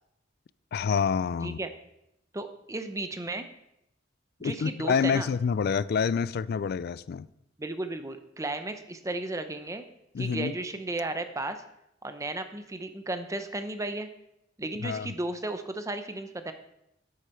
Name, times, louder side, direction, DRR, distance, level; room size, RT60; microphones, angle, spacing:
voice 1, 0.7-1.6 4.4-7.3 10.1-10.5 14.8-15.1, left 6 dB, 55° left, 0.3 m, -27 dB
voice 2, 1.4-1.7 2.3-3.5 4.4-5.3 7.6-9.9 10.2-11.6 12.0-14.1 14.6-16.5, right 2 dB, 15° right, 0.7 m, -34 dB
9.6 x 8.3 x 4.4 m
head